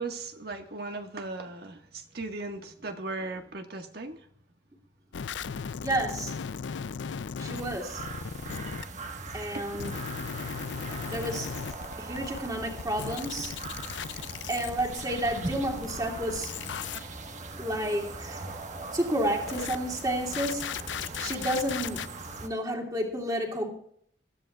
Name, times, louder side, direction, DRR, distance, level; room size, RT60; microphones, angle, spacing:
voice 1, 0.0-4.2 9.5-9.8, right 3 dB, 60° right, 4 dB, 1.6 m, -37 dB
sound 1, 5.1-8.8 9.8-12.5 12.8-17.0 19.5-19.8 20.3-22.1, left 7 dB, 85° left, 0.5 m, -37 dB
voice 2, 5.8-6.3 7.4-8.0 9.3-10.0 11.1-11.5 12.0-13.6 14.5-16.5 17.6-18.4 18.9-20.8 21.2-22.1 22.4-23.7, right 1 dB, 20° right, -1 dB, 2.7 m, -31 dB
sound 2, 7.6-22.5, right 3 dB, 40° right, 1.3 m, -40 dB
22.5 x 13.5 x 2.4 m, 0.67 s
head